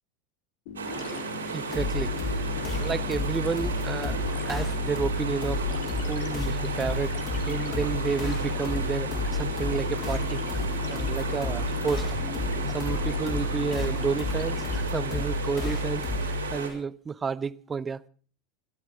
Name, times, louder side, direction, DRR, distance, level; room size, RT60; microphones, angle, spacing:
sound 1, 0.7-14.8, left 4 dB, 55° left, 4.1 m, -39 dB
sound 2, 0.8-16.7, right 5 dB, 75° right, 5.3 m, -35 dB
voice 1, 1.5-2.5 2.8-4.2 4.4-5.7 6.1-7.2 7.5-10.4 10.9-12.1 12.7-18.1, right 5 dB, 20° right, 0.8 m, -31 dB
sound 3, 1.7-16.5, left 3 dB, 35° left, 6.3 m, -31 dB
29.5 x 13.5 x 3.7 m
figure-of-eight pair, 80°, 0 cm